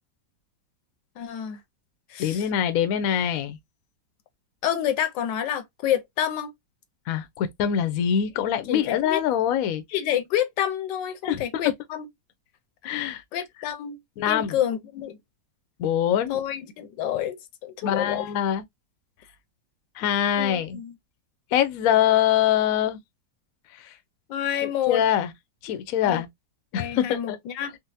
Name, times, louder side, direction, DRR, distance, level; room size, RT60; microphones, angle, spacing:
voice 1, 1.2-1.6 2.1-2.5 4.6-6.5 8.7-9.2 9.9-12.1 12.8-13.0 13.3-14.0 14.2-15.2 16.3-18.2 20.3-21.0 24.3-25.0 26.0-26.2 26.7-27.8, left 10 dB, 85° left, 1.3 m, -28 dB
voice 2, 2.2-3.6 7.1-9.8 11.2-11.4 12.8-13.2 14.2-14.6 15.8-16.4 17.8-18.6 20.0-20.8 21.5-23.0 23.7-23.9 24.6-25.3 25.6-26.3 26.7-27.4, left 10 dB, 70° left, 0.8 m, -24 dB
4.0 x 2.1 x 2.5 m
omnidirectional pair, 1.9 m